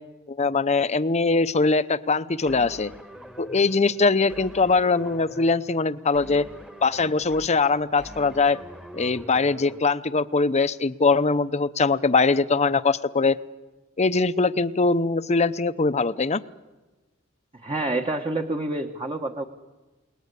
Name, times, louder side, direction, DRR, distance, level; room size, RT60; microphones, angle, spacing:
voice 1, 0.3-2.9 3.4-6.4 6.8-8.6 8.9-13.4 14.0-16.4, left 3 dB, 30° left, 13 dB, 0.7 m, -22 dB
sound 1, 2.5-9.8, equal, 5° right, 1.3 m, -44 dB
voice 2, 17.6-19.4, right 2 dB, 25° right, 3 dB, 1.3 m, -28 dB
29.5 x 20.0 x 8.2 m, 1.2 s
head